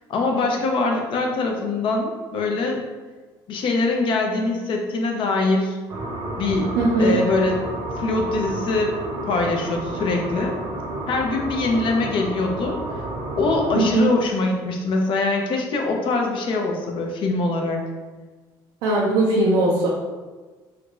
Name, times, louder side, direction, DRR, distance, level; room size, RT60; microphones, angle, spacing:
voice 1, 0.1-2.8 3.5-5.8 6.4-7.6 8.0-9.0 9.3-10.6 11.1-12.8 13.4-17.8, left 3 dB, 55° left, 2 dB, 0.6 m, -23 dB
sound 1, 5.9-13.9, right 2 dB, 50° right, 0.8 m, -31 dB
voice 2, 6.8-7.2 13.8-14.1 18.8-19.9, right 2 dB, 85° right, -4 dB, 0.6 m, -19 dB
3.4 x 3.0 x 2.4 m, 1.3 s
supercardioid pair, 85°, 10 cm